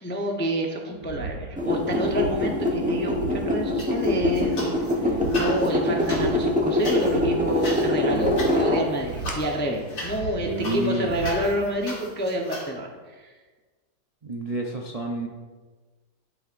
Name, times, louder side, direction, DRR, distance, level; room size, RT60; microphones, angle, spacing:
voice 1, 0.0-4.7 5.0-12.9 13.2-13.3, right 1 dB, 15° left, 0 dB, 0.4 m, -28 dB
sound 1, 0.9-12.7, right 4 dB, 85° right, 1.5 m, -38 dB
sound 2, 1.6-9.3, left 1 dB, 5° right, 0.8 m, -24 dB
sound 3, 3.8-4.9 5.2-12.7, left 1 dB, 85° left, 3.0 m, -37 dB
voice 2, 10.1-11.2 14.2-15.3, right 1 dB, 40° right, -1 dB, 0.5 m, -29 dB
11.0 x 8.6 x 2.6 m, 1.4 s
omnidirectional pair, 1.8 m